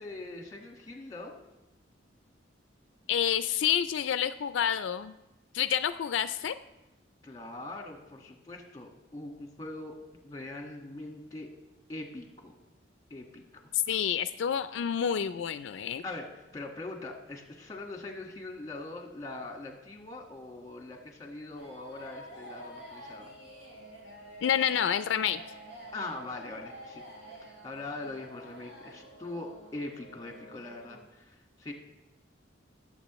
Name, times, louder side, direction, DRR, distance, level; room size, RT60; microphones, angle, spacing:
voice 1, 0.0-1.3 7.2-10.0 10.2-11.5 11.9-12.5 13.1-13.6 16.0-23.3 25.9-31.7, left 2 dB, 20° left, 2 dB, 1.6 m, -42 dB
voice 2, 3.1-5.2 5.5-6.6 13.7-16.0 24.4-25.4, left 9 dB, 85° left, 12 dB, 0.4 m, -28 dB
sound 1, 21.6-31.0, equal, 85° right, 3.5 m, -49 dB
18.5 x 7.7 x 3.1 m, 1.0 s
head